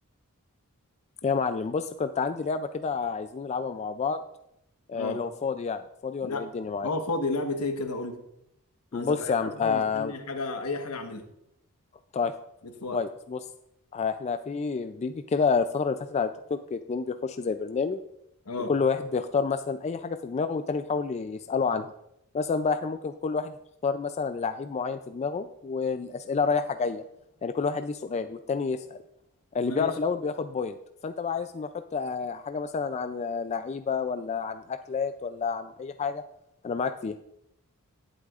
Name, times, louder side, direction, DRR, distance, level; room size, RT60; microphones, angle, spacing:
voice 1, 1.2-4.2 4.9-6.9 8.9-10.1 12.1-12.3 12.9-13.4 13.9-18.0 18.7-21.9 22.3-23.5 23.8-27.0 27.4-29.0 29.5-30.8 31.0-36.2 36.6-37.2, left 5 dB, 30° left, 9 dB, 0.3 m, -29 dB
voice 2, 6.8-8.2 8.9-11.2 12.8-13.0 18.4-18.7 29.6-29.9, left 2 dB, 80° left, 6 dB, 1.2 m, -32 dB
17.5 x 8.2 x 2.4 m, 0.82 s
head